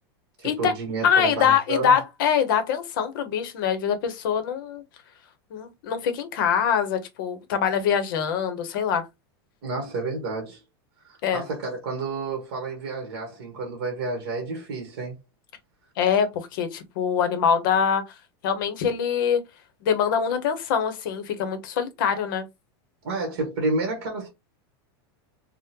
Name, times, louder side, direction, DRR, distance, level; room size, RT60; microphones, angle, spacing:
voice 1, 0.4-2.0 9.6-10.6 11.0-15.2 23.0-24.3, right 3 dB, 55° right, 1.1 m, -30 dB
voice 2, 1.0-4.8 5.5-9.0 11.2-11.4 16.0-18.0 18.4-19.4 19.8-22.5, left 7 dB, 55° left, 0.7 m, -24 dB
3.6 x 2.1 x 2.8 m
supercardioid pair, 175°, 13 cm